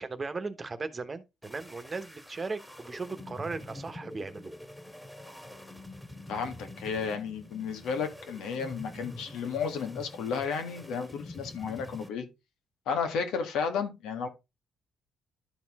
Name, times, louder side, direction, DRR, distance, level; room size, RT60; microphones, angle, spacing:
voice 1, 0.0-4.5, right 4 dB, 30° right, 1.2 m, -37 dB
sound 1, 1.4-12.1, left 1 dB, 5° left, 2.2 m, -46 dB
voice 2, 6.3-12.3 12.8-14.3, left 6 dB, 85° left, 1.7 m, -33 dB
12.0 x 4.4 x 3.6 m
cardioid pair, 90°, 0 cm